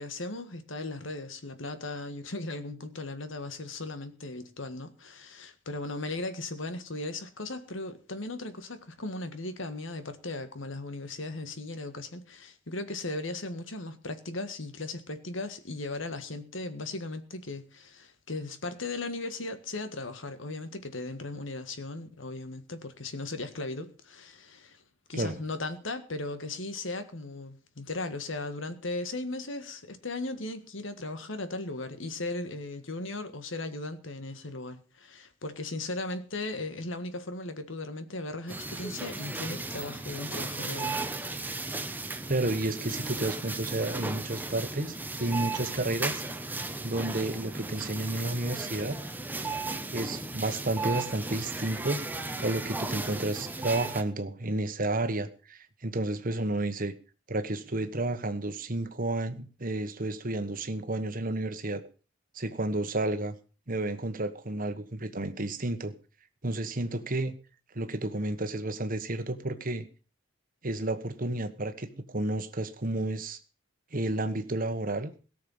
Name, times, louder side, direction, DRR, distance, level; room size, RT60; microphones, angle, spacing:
voice 1, 0.0-24.8 25.1-41.0, left 2 dB, 70° left, 1.7 m, -37 dB
sound 1, 38.5-54.0, right 3 dB, 10° right, 1.1 m, -35 dB
voice 2, 42.3-46.2 46.8-49.0 49.9-52.0 52.4-56.9 57.3-61.8 62.3-63.3 63.7-65.9 66.4-67.3 67.7-69.8 70.6-73.4 73.9-75.1, right 2 dB, 45° right, 1.3 m, -31 dB
17.5 x 6.9 x 7.2 m
head